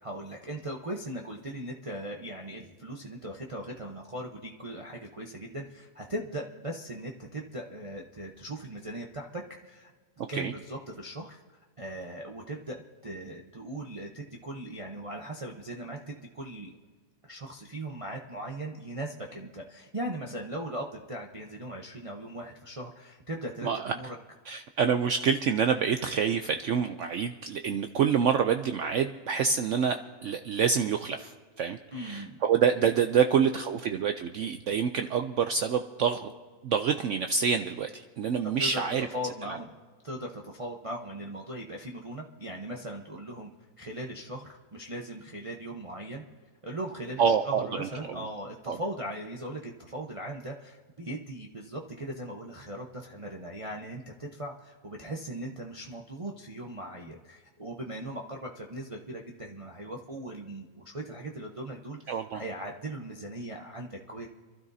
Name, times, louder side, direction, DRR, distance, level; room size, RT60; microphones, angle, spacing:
voice 1, 0.0-9.9 10.3-11.4 11.8-12.8 13.0-16.7 17.2-24.1 31.9-32.4 38.6-38.8 39.1-39.7 40.0-43.5 43.8-46.2 46.6-64.3, right 1 dB, 30° right, -1 dB, 0.7 m, -39 dB
voice 2, 10.2-10.5 23.6-23.9 24.5-36.3 36.6-39.1 47.2-48.2 48.7-48.8 62.1-62.4, right 7 dB, 65° right, 7 dB, 0.8 m, -27 dB
27.0 x 12.5 x 2.7 m, 1.5 s
omnidirectional pair, 1.6 m